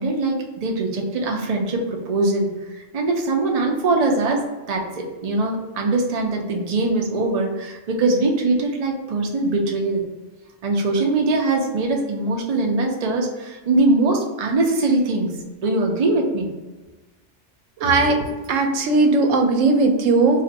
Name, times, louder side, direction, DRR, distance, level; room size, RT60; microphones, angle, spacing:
voice 1, 0.0-10.0 10.6-16.5, right 2 dB, 45° right, 1 dB, 0.5 m, -22 dB
voice 2, 17.8-18.2 18.5-20.4, right 3 dB, 85° right, 4 dB, 0.9 m, -17 dB
2.6 x 2.5 x 3.9 m, 1.2 s
omnidirectional pair, 1.3 m